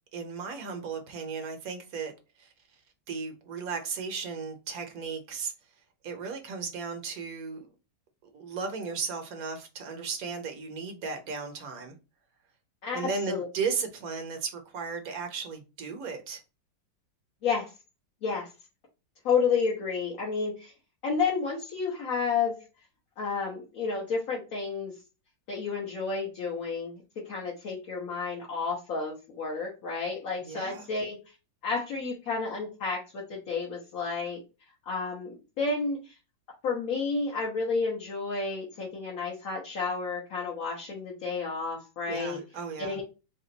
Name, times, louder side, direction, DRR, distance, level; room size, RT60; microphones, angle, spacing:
voice 1, 0.1-2.1 2.4-2.5 3.1-5.5 6.0-7.7 8.3-11.9 12.9-16.4 30.4-30.9 42.1-43.0, right 5 dB, 60° right, 1.2 m, -35 dB
voice 2, 19.2-20.7 21.0-22.6 23.2-24.9 25.5-27.0 27.3-31.2 31.6-34.4 34.9-36.0 36.6-42.4 42.8-43.0, left 4 dB, 55° left, 1.5 m, -31 dB
4.2 x 2.5 x 3.9 m
omnidirectional pair, 1.9 m